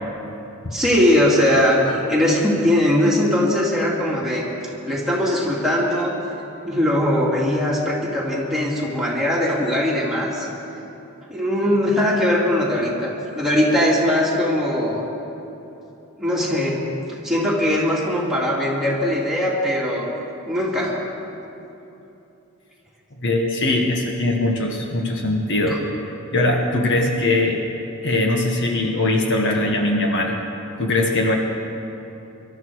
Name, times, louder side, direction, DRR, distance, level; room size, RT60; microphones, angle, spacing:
voice 1, 0.7-4.4 4.8-6.2 6.6-10.5 11.3-15.1 16.2-16.8 17.2-20.1 20.5-21.0 25.7-25.8, left 1 dB, ahead, -5 dB, 2.6 m, -20 dB
voice 2, 23.2-25.8 26.3-27.6 28.0-30.4 30.8-31.3, left 2 dB, 55° left, 2 dB, 1.4 m, -21 dB
23.0 x 12.5 x 4.7 m, 3.0 s
head